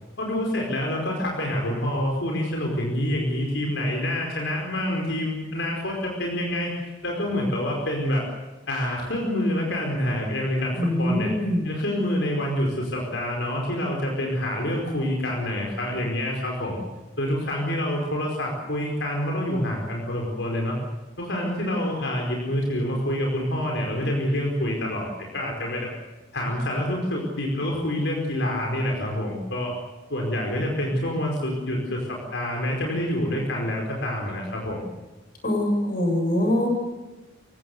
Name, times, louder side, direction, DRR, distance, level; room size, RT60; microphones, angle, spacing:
voice 1, 0.2-6.8 7.0-8.2 8.7-11.3 11.6-16.8 17.2-20.7 21.2-25.9 26.3-29.7 30.1-34.9, left 1 dB, 80° left, 0 dB, 4.9 m, -27 dB
voice 2, 10.8-11.6 35.4-36.7, left 1 dB, 50° left, 3 dB, 7.7 m, -23 dB
28.5 x 17.0 x 8.0 m, 1.1 s
head